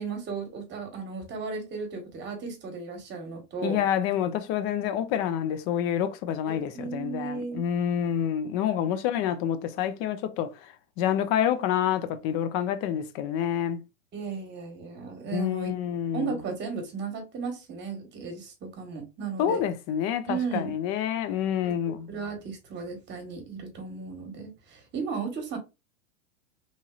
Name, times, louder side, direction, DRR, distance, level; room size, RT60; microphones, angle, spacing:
voice 1, 0.0-3.8 6.5-7.6 8.8-9.0 14.1-15.7 16.1-19.6 20.3-20.7 21.6-21.7 22.1-25.6, right 5 dB, 25° right, 1.1 m, -35 dB
voice 2, 3.6-13.8 15.3-16.4 19.4-22.1, left 9 dB, 35° left, 0.4 m, -28 dB
3.1 x 2.6 x 2.3 m
hypercardioid pair, 120°, 41 cm